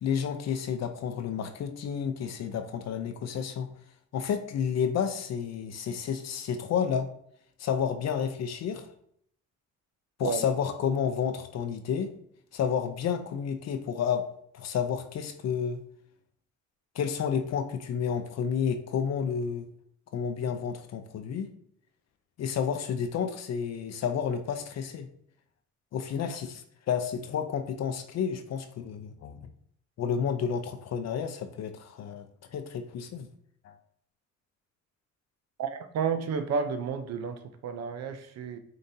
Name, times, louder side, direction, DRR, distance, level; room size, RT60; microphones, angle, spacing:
voice 1, 0.0-3.7 4.1-7.1 7.6-8.9 10.2-12.1 12.5-14.3 14.5-15.8 16.9-19.7 20.1-21.5 22.4-25.1 25.9-29.4 30.0-33.3 33.6-33.8, left 7 dB, 60° left, 7 dB, 0.5 m, -30 dB
voice 2, 35.6-38.6, right 6 dB, 60° right, 8 dB, 0.6 m, -31 dB
5.1 x 2.8 x 2.6 m, 0.66 s
cardioid pair, 90°, 30 cm